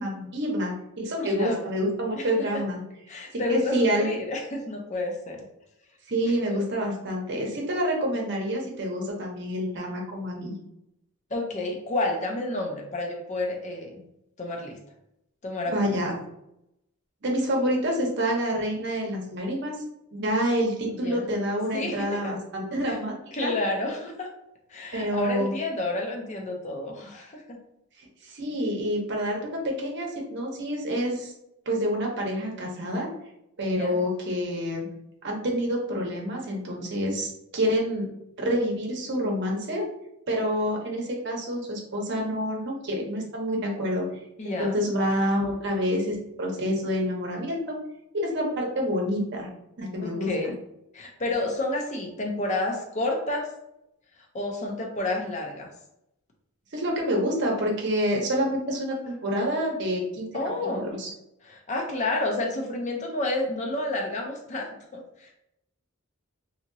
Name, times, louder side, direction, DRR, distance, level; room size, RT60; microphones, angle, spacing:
voice 1, 0.0-2.8 3.5-4.2 6.1-10.5 15.7-16.1 17.2-19.7 20.1-23.1 23.4-23.5 24.9-25.5 28.2-31.3 31.7-33.1 33.6-34.9 35.2-38.1 38.4-39.8 40.3-44.1 44.4-47.8 48.1-49.5 49.8-50.3 56.7-60.3 60.8-61.1, equal, 55° right, 0 dB, 0.8 m, -27 dB
voice 2, 1.3-1.7 2.2-2.3 3.1-5.5 6.2-6.6 11.3-14.0 14.4-14.8 15.4-16.0 20.9-21.3 21.7-22.4 22.9-23.0 23.3-24.3 24.7-27.6 33.7-34.0 44.4-44.8 50.0-50.6 50.9-53.5 54.3-55.7 60.3-60.8 61.4-65.3, left 2 dB, 35° left, 1 dB, 0.6 m, -30 dB
2.8 x 2.8 x 2.6 m, 0.82 s
head